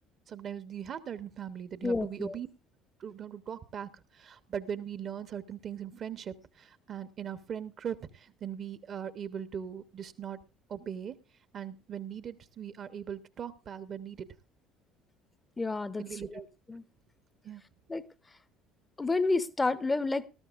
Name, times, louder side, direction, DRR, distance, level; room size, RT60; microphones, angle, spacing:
voice 1, 0.3-2.5 3.0-10.4 10.7-11.1 11.5-14.3 16.0-16.5 17.4-17.6, right 8 dB, 45° right, 13 dB, 1.1 m, -40 dB
voice 2, 1.8-2.4 15.6-16.0 16.3-16.4 16.7-16.8 17.9-18.0 19.0-20.3, left 3 dB, 20° left, 15 dB, 0.9 m, -29 dB
19.0 x 13.5 x 2.5 m, 0.29 s
hypercardioid pair, 60°, 0 cm